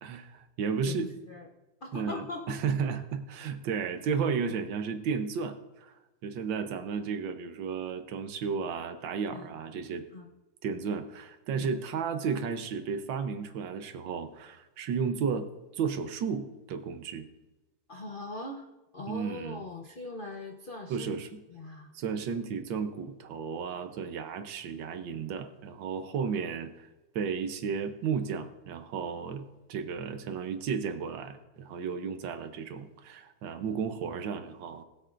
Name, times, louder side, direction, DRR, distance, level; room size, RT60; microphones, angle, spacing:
voice 1, 0.0-1.1 1.9-5.9 6.2-10.0 10.6-15.5 15.7-17.3 19.1-19.6 20.9-21.4 21.9-26.9 27.1-34.8, right 6 dB, 70° right, 8 dB, 1.5 m, -33 dB
voice 2, 0.8-1.5 1.8-2.6 9.3-9.5 10.1-10.3 11.5-11.7 17.9-18.7 18.9-21.2 21.5-21.9, left 2 dB, 55° left, 2 dB, 0.5 m, -40 dB
20.0 x 7.9 x 2.5 m, 1.1 s
omnidirectional pair, 2.2 m